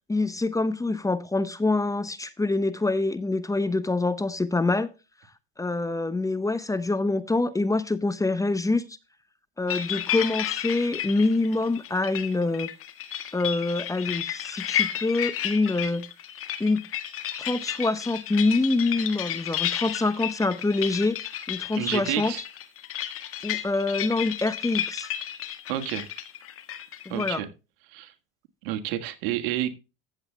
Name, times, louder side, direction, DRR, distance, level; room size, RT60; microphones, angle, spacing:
voice 1, 0.1-4.9 5.6-8.8 9.6-12.7 13.3-16.0 16.6-16.8 17.4-21.2 21.5-22.3 23.4-25.1 27.1-27.4, left 2 dB, 10° left, 0.9 m, -25 dB
sound 1, 9.7-27.4, left 11 dB, 50° left, 1.6 m, -32 dB
voice 2, 21.8-22.4 25.7-26.1 27.1-27.5 27.9-28.1 28.6-29.7, right 12 dB, 75° right, 1.7 m, -29 dB
15.0 x 8.0 x 2.2 m
supercardioid pair, 90°, 29 cm